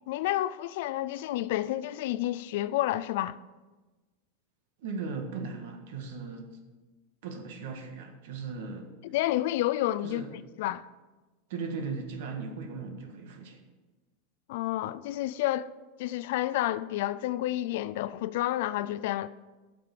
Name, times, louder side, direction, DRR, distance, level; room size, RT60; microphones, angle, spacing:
voice 1, 0.1-3.4 9.1-10.9 14.5-15.7 16.0-19.3, left 14 dB, 50° left, 0.3 m, -30 dB
voice 2, 4.8-6.5 7.2-8.9 10.0-10.3 11.5-13.6, right 4 dB, 55° right, 1.6 m, -37 dB
9.0 x 6.7 x 7.6 m
supercardioid pair, 180°, 0 cm